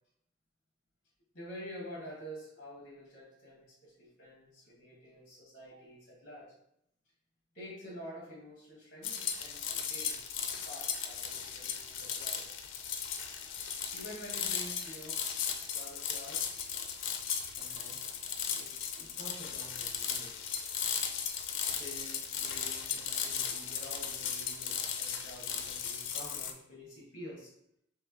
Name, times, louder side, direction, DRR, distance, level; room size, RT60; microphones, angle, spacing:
voice 1, 1.3-6.5 7.5-10.4 10.7-12.5 13.9-15.4 15.7-16.5 17.6-18.1 18.4-20.3 21.7-27.5, equal, 45° left, -5 dB, 1.2 m, -49 dB
sound 1, 9.0-26.5, left 7 dB, 80° left, 0.4 m, -36 dB
3.3 x 2.9 x 3.6 m, 0.74 s
head